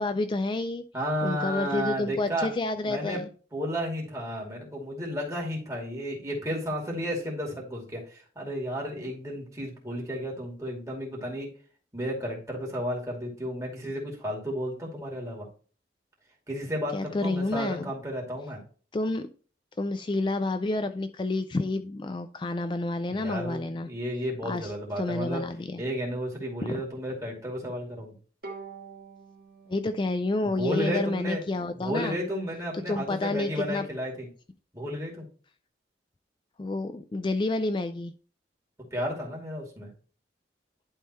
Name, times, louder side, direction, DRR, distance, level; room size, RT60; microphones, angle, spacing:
voice 1, 0.0-0.8 1.2-3.3 16.9-17.9 18.9-19.3 19.8-23.9 24.4-25.8 26.7-26.8 29.7-32.2 32.9-33.9 36.6-38.1, left 2 dB, 25° left, 10 dB, 0.3 m, -29 dB
voice 2, 0.9-2.5 2.9-3.2 3.5-11.5 11.9-15.5 16.5-18.6 23.1-25.4 25.8-28.1 30.4-31.4 31.7-34.3 34.7-35.3 38.9-39.9, equal, 15° right, -2 dB, 2.5 m, -32 dB
Bowed string instrument, 28.4-31.8, right 4 dB, 55° right, 1.7 m, -47 dB
11.0 x 3.7 x 4.3 m, 0.40 s
head